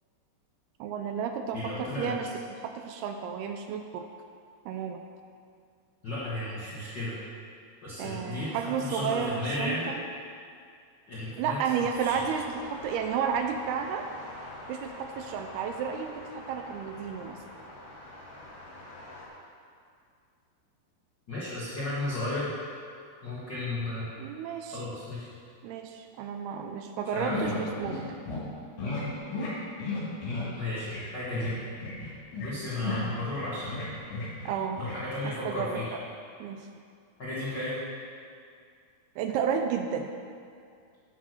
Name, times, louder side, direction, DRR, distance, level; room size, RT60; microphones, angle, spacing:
voice 1, 0.8-4.1 4.7-5.0 8.0-10.0 11.4-14.1 14.7-17.4 24.2-24.8 25.6-28.0 34.5-34.8 35.2-35.8 36.4-36.6 39.2-40.1, right 7 dB, 80° right, 5 dB, 2.4 m, -32 dB
voice 2, 1.5-2.1 6.0-7.2 7.8-9.9 11.1-12.2 21.3-22.5 23.2-24.1 24.7-25.3 27.1-27.6 30.5-31.6 32.4-34.5 34.7-35.9 37.2-37.8, left 2 dB, 90° left, -9 dB, 0.9 m, -34 dB
sound 1, 11.9-19.3, left 1 dB, 70° left, 1.4 m, -45 dB
sound 2, 27.3-28.0 28.3-28.4 28.8-29.0 29.3-29.5 29.8-30.5 30.8-31.0 31.3-31.5 31.8-32.5 32.8-34.5 34.8-35.0, left 3 dB, 55° left, 3.2 m, -34 dB
8.3 x 6.1 x 6.6 m, 2.3 s
omnidirectional pair, 4.8 m